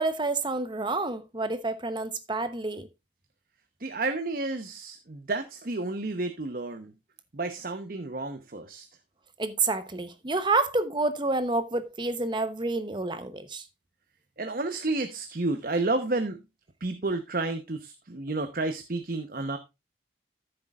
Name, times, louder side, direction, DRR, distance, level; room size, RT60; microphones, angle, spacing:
voice 1, 0.0-2.9 9.4-13.7, right 3 dB, 25° right, 0.9 m, -28 dB
voice 2, 3.8-6.9 7.3-8.9 14.4-16.4 16.8-19.6, right 2 dB, 50° right, 1.0 m, -31 dB
14.0 x 7.8 x 2.4 m
head